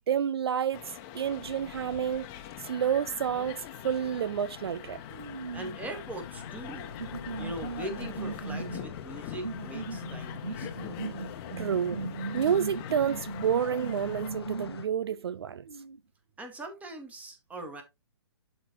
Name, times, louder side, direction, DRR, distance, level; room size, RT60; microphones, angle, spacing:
voice 1, 0.1-2.3 2.6-5.0 11.6-12.0 12.3-15.6, right 8 dB, 65° right, 0.4 m, -29 dB
sound 1, 0.7-14.3, left 11 dB, 30° left, 1.1 m, -44 dB
sound 2, 1.3-14.9, left 7 dB, 65° left, 0.8 m, -45 dB
sound 3, 5.1-5.9 6.7-14.8 15.1-16.0, right 4 dB, 90° right, 0.7 m, -38 dB
voice 2, 5.5-6.9 7.4-11.0 16.4-17.8, right 1 dB, 10° right, 1.7 m, -41 dB
11.5 x 4.1 x 3.0 m
figure-of-eight pair, 120°, 14 cm